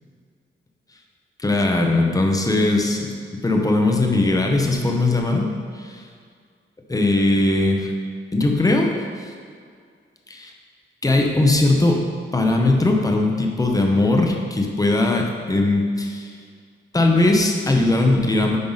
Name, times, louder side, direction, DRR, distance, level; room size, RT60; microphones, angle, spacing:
voice 1, 1.4-6.0 6.9-7.9 8.3-8.9 9.2-9.3 10.3-10.5 11.0-12.0 12.3-16.3 16.9-18.6, left 2 dB, 15° left, 2 dB, 0.8 m, -19 dB
8.7 x 5.5 x 4.0 m, 2.1 s
wide cardioid pair, 165°, 21 cm